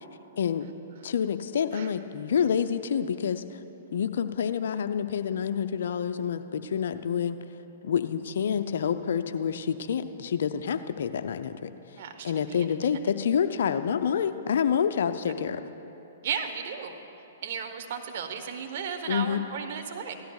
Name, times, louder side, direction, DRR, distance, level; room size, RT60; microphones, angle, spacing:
voice 1, 0.4-0.7 1.0-3.4 3.9-7.4 7.8-11.7 12.2-15.6 19.1-19.4, left 7 dB, 65° left, 9 dB, 0.5 m, -28 dB
voice 2, 12.0-12.7 16.2-16.9 17.4-20.2, right 7 dB, 55° right, 6 dB, 1.0 m, -35 dB
17.0 x 13.0 x 2.4 m, 3.0 s
hypercardioid pair, 120°, 0 cm